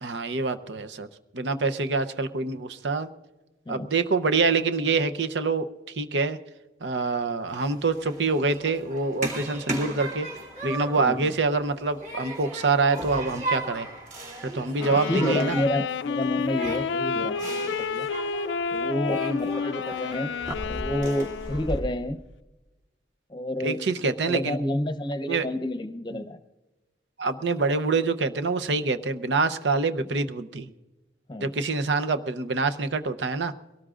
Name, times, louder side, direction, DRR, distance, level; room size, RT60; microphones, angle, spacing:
voice 1, 0.0-1.1 1.3-3.1 3.7-5.7 6.0-6.4 6.8-10.3 10.6-13.9 14.5-15.6 23.6-24.6 25.3-25.5 26.1-26.2 27.2-30.7 31.4-33.5, right 3 dB, 80° right, 10 dB, 0.7 m, -26 dB
Human group actions, 7.5-21.8, right 1 dB, 45° right, 2.7 m, -36 dB
voice 2, 11.0-11.3 14.9-18.1 18.7-20.3 20.7-22.2 23.3-26.4 31.3-31.5, left 1 dB, 25° left, 7 dB, 0.7 m, -29 dB
Wind instrument woodwind instrument, 14.8-22.0, left 5 dB, 85° left, 0.4 m, -30 dB
22.5 x 18.0 x 2.5 m, 1.1 s
head